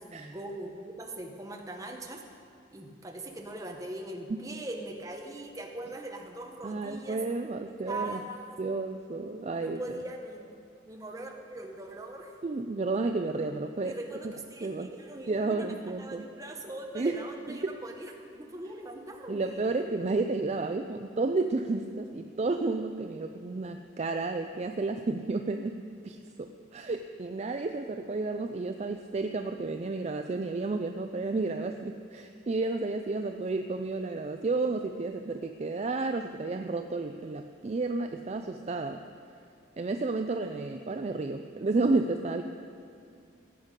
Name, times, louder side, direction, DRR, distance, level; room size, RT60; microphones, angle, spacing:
voice 1, 0.0-2.2 2.7-7.2 7.9-8.6 9.6-10.5 10.8-12.3 13.8-19.7, right 1 dB, 20° right, 2 dB, 1.0 m, -41 dB
voice 2, 6.6-8.2 8.6-10.0 12.4-13.9 14.6-14.9 15.3-16.2 16.9-17.2 17.5-17.7 19.3-39.0 39.8-42.4, right 3 dB, 35° right, 6 dB, 0.4 m, -31 dB
17.0 x 8.1 x 5.2 m, 2.5 s
head